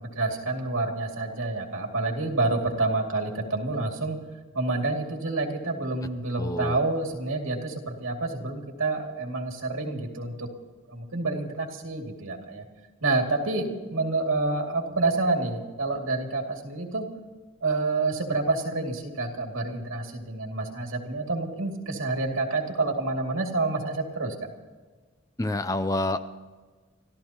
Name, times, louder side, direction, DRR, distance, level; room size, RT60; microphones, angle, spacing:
voice 1, 0.0-4.2 4.5-10.5 10.9-12.6 13.0-17.1 17.6-24.3, right 3 dB, 85° right, 1 dB, 2.5 m, -28 dB
voice 2, 6.4-6.8 25.4-26.2, left 1 dB, 15° left, 11 dB, 0.5 m, -27 dB
30.0 x 14.0 x 3.0 m, 1.4 s
head